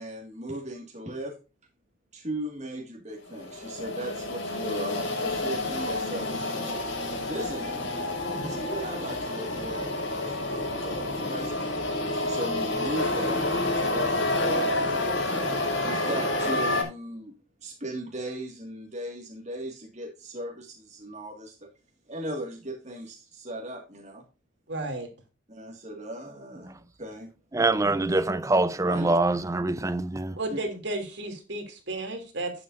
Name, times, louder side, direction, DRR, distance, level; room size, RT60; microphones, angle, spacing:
voice 1, 0.0-1.4 2.1-6.8 7.3-7.9 8.4-11.6 12.1-15.3 15.8-21.7 22.1-24.2 25.5-27.3 28.8-29.2 30.5-30.6, right 1 dB, 35° right, 1.9 m, -37 dB
sound 1, 3.3-16.8, left 2 dB, 85° left, 4.2 m, -29 dB
voice 2, 24.7-25.1 27.8-27.9 30.4-32.5, right 2 dB, 65° right, 2.7 m, -33 dB
voice 3, 27.5-30.4, right 2 dB, 15° right, 0.5 m, -24 dB
10.5 x 9.0 x 2.6 m
head